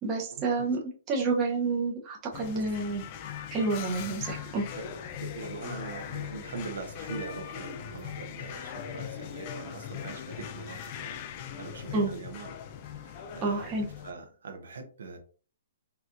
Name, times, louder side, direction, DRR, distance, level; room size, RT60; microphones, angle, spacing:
voice 1, 0.0-0.8 1.1-3.0 3.5-4.6 11.9-12.1 13.4-13.9, right 3 dB, 20° right, -2 dB, 0.7 m, -29 dB
sound 1, 2.3-14.1, left 8 dB, 30° left, 0.4 m, -40 dB
voice 2, 4.7-11.2 11.6-12.6 12.8-13.8 14.0-15.2, right 4 dB, 80° right, 6 dB, 0.9 m, -42 dB
4.3 x 2.3 x 2.5 m, 0.39 s
hypercardioid pair, 165°, 0 cm